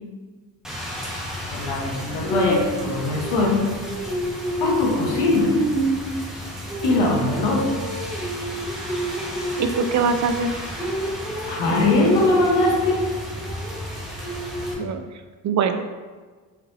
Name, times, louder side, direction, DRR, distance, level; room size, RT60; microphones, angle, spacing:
Rain, 0.6-14.7, right 1 dB, ahead, 1.4 m, -29 dB
voice 1, 1.5-3.6 4.6-5.5 6.8-7.7 11.5-13.0, left 2 dB, 80° left, -2 dB, 1.1 m, -21 dB
voice 2, 9.6-10.5 14.8-15.0 15.4-15.8, right 5 dB, 45° right, 8 dB, 0.4 m, -22 dB
4.5 x 4.0 x 2.7 m, 1.4 s
supercardioid pair, 50°, 41 cm